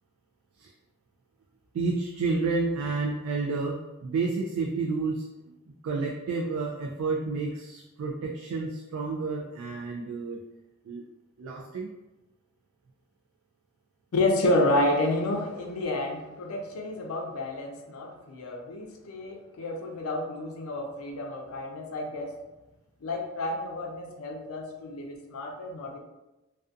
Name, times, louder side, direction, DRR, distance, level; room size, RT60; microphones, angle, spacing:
voice 1, 1.7-5.2 5.8-10.4 10.9-11.0 11.4-11.9, right 3 dB, 85° right, 0 dB, 0.3 m, -30 dB
voice 2, 14.1-22.4 23.0-26.0, left 1 dB, 85° left, 3 dB, 0.4 m, -30 dB
2.3 x 2.3 x 2.5 m, 1.0 s
head